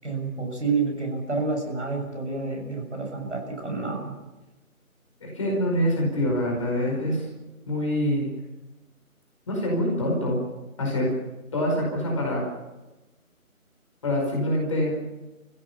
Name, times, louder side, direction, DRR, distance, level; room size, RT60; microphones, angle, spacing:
voice 1, 0.0-4.1, right 4 dB, 55° right, 1 dB, 6.7 m, -29 dB
voice 2, 5.2-7.3 7.7-8.3 9.5-10.4 10.8-11.1 11.5-12.4 14.0-14.9, equal, 20° left, -2 dB, 4.9 m, -25 dB
28.5 x 16.0 x 7.1 m, 1.1 s
figure-of-eight pair, 160°, 43 cm